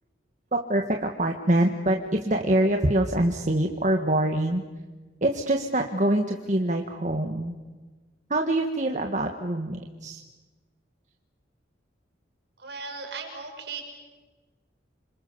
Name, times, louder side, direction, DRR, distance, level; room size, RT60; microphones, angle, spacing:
voice 1, 0.5-4.6 5.2-7.6 8.3-10.2, right 1 dB, 40° right, 3 dB, 1.7 m, -25 dB
voice 2, 12.6-13.8, right 4 dB, 65° right, 2 dB, 6.6 m, -37 dB
28.5 x 26.0 x 7.2 m, 1.3 s
head